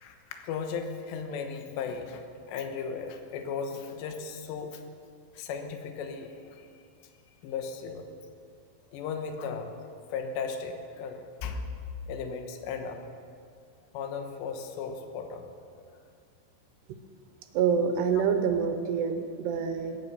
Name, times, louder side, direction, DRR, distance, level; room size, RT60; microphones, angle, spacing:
voice 1, 0.0-4.8 5.3-6.7 7.4-8.1 8.9-9.8 10.1-11.7 12.1-13.0 13.9-15.5 15.9-16.0 18.1-18.2, left 5 dB, 75° left, 5 dB, 3.2 m, -36 dB
voice 2, 17.5-20.0, right 6 dB, 75° right, 7 dB, 2.8 m, -26 dB
19.5 x 9.5 x 6.7 m, 2.3 s
omnidirectional pair, 5.3 m